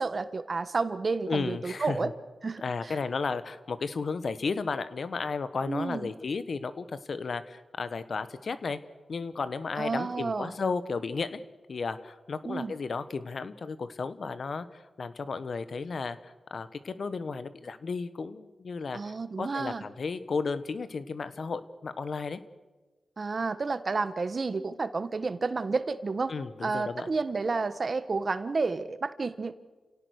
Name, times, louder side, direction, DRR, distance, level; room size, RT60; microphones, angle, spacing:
voice 1, 0.0-2.1 2.4-3.0 5.7-6.1 9.8-10.5 12.4-12.7 18.9-19.8 23.2-26.3 26.6-29.5, right 4 dB, 50° right, 12 dB, 1.4 m, -31 dB
voice 2, 1.3-2.1 2.6-8.8 9.1-11.4 11.7-22.4 26.3-27.1, left 4 dB, 65° left, 13 dB, 1.2 m, -34 dB
29.0 x 17.5 x 6.5 m, 1.2 s
cardioid pair, 60°, 0 cm